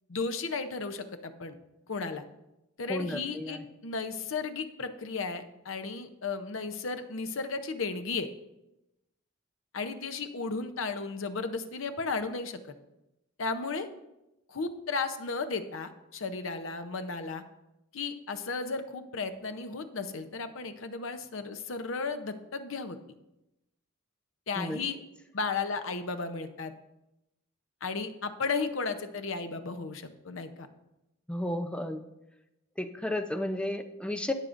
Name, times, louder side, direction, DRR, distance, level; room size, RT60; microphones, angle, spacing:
voice 1, 0.1-1.5 1.9-2.2 2.8-8.3 9.7-12.6 13.4-13.9 14.5-17.4 17.9-23.0 24.5-25.0 25.3-26.7 27.8-30.7, left 4 dB, 70° left, 8 dB, 0.8 m, -34 dB
voice 2, 2.9-3.6 24.6-24.8 31.3-32.1 32.8-34.3, left 1 dB, 5° left, 7 dB, 0.6 m, -33 dB
18.0 x 6.5 x 2.6 m, 0.92 s
head